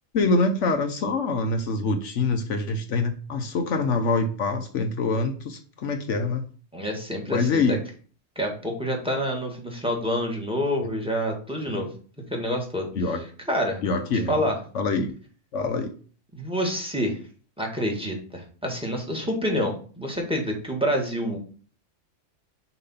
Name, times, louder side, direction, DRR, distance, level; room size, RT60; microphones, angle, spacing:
voice 1, 0.1-6.5 7.3-7.8 11.7-11.8 12.9-13.2 13.8-14.4 14.7-15.1 15.5-15.9, left 3 dB, 75° left, 5 dB, 1.1 m, -25 dB
voice 2, 6.7-7.8 8.3-11.9 12.3-12.9 13.5-13.8 14.3-14.6 16.3-17.2 17.6-21.4, equal, 5° right, 1 dB, 1.6 m, -27 dB
6.8 x 3.1 x 5.6 m, 0.40 s
omnidirectional pair, 1.3 m